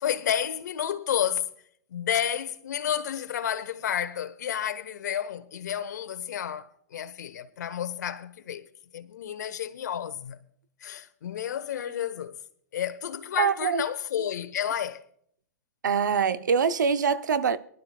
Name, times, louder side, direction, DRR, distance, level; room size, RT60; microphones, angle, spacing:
voice 1, 0.0-1.5 1.9-8.7 8.9-10.4 10.8-12.4 12.7-15.0, left 9 dB, 70° left, 1.2 m, -31 dB
voice 2, 13.4-13.9 15.8-17.6, right 6 dB, 80° right, 0.8 m, -24 dB
23.0 x 12.0 x 2.3 m
hypercardioid pair, 125°, 10 cm